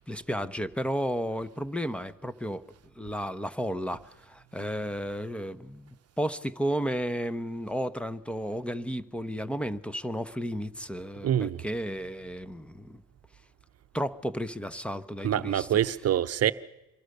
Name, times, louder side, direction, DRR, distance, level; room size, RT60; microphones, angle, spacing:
voice 1, 0.0-2.6 3.0-13.0 13.9-15.7, equal, 5° left, 0.9 m, -33 dB
voice 2, 11.2-11.6 15.2-16.5, right 10 dB, 55° right, 0.8 m, -25 dB
26.5 x 22.5 x 6.7 m
cardioid pair, 90°, 30 cm